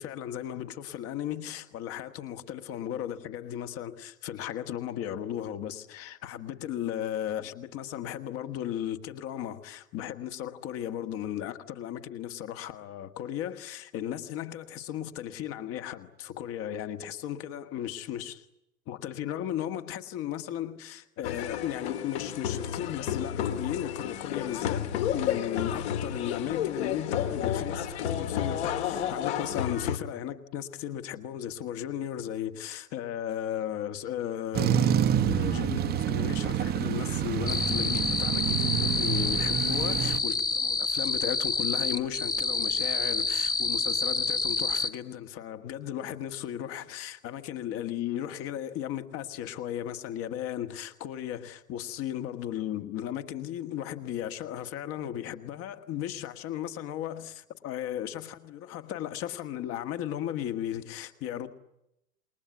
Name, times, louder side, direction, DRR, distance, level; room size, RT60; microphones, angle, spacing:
voice 1, 0.0-18.5 18.9-34.9 35.3-61.5, left 11 dB, 30° left, 1.6 m, -36 dB
sound 1, 21.2-30.0, left 9 dB, 45° left, 2.1 m, -31 dB
sound 2, 34.5-40.2, right 9 dB, 20° right, 1.1 m, -27 dB
sound 3, 37.5-44.9, left 4 dB, 10° left, 1.1 m, -28 dB
28.0 x 21.5 x 9.3 m
figure-of-eight pair, 95°, 43 cm